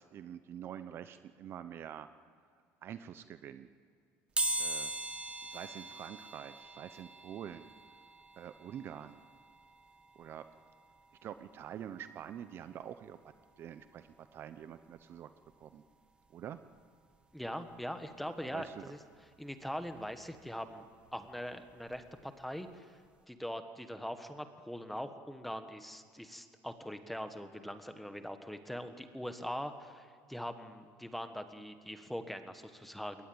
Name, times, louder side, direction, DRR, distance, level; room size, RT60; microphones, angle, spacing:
voice 1, 0.0-2.1 2.8-3.7 4.6-4.9 5.4-7.7 8.4-9.2 10.2-10.4 11.2-15.3 15.6-15.8 16.3-16.6 18.5-18.9, right 9 dB, 40° right, 11 dB, 0.8 m, -46 dB
sound 1, 4.4-15.0 15.5-15.6 16.7-16.8 17.1-19.2 19.6-22.2 22.5-22.7 23.0-23.1, right 2 dB, 15° right, 1.7 m, -42 dB
voice 2, 17.3-19.0 19.4-23.0 23.3-33.3, equal, ahead, 8 dB, 1.4 m, -42 dB
21.5 x 19.0 x 8.8 m, 2.3 s
cardioid pair, 140°, 6 cm